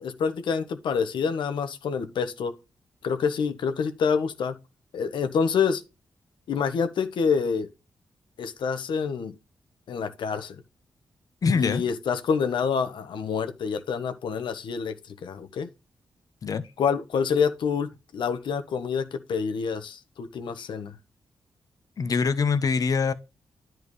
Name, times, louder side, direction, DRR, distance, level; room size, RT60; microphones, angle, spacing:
voice 1, 0.0-2.5 3.0-4.5 4.9-5.8 6.5-7.7 8.4-9.3 9.9-10.6 11.5-15.7 16.8-20.9, left 6 dB, 80° left, 1.2 m, -27 dB
voice 2, 11.4-11.8 16.4-16.6 22.0-23.1, left 5 dB, 50° left, 0.9 m, -23 dB
10.5 x 4.7 x 3.2 m
wide cardioid pair, 110°, 8 cm